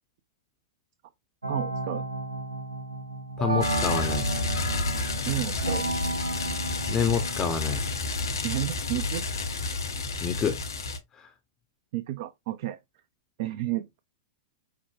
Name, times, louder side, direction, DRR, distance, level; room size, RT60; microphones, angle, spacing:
sound 1, 1.4-9.6, right 2 dB, 85° right, 0.8 m, -33 dB
voice 1, 1.5-2.0 5.3-5.9 8.4-9.2 11.9-12.8 13.4-14.0, right 14 dB, 55° right, 0.5 m, -31 dB
voice 2, 3.4-4.3 6.9-7.8 10.2-10.6 11.1-11.3, left 7 dB, 25° left, 0.6 m, -27 dB
sound 2, 3.6-11.0, left 3 dB, 75° left, 1.1 m, -30 dB
5.7 x 2.1 x 3.3 m
figure-of-eight pair, 105°, 2 cm